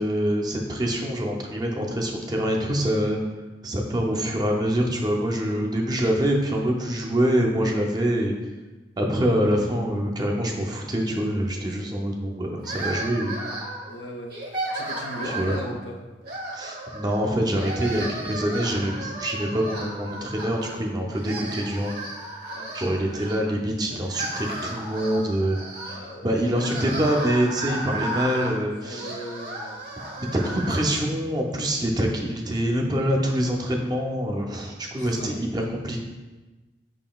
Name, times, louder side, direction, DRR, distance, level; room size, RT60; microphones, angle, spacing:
voice 1, 0.0-3.2 3.6-8.3 9.0-13.5 15.2-15.6 16.5-22.0 22.7-25.6 25.8-26.0 26.2-29.2 30.3-36.0, equal, 25° right, 0 dB, 0.5 m, -25 dB
sound 1, 12.6-13.9 14.3-15.8 16.2-17.2 17.5-20.8 21.1-23.4 23.9-30.8, right 1 dB, 60° right, 1.0 m, -34 dB
voice 2, 13.9-14.3 14.7-16.0 22.5-23.3 25.9-26.4 28.7-29.8 34.9-35.3, equal, 80° left, 1 dB, 0.6 m, -38 dB
5.6 x 3.7 x 2.3 m, 1.2 s
head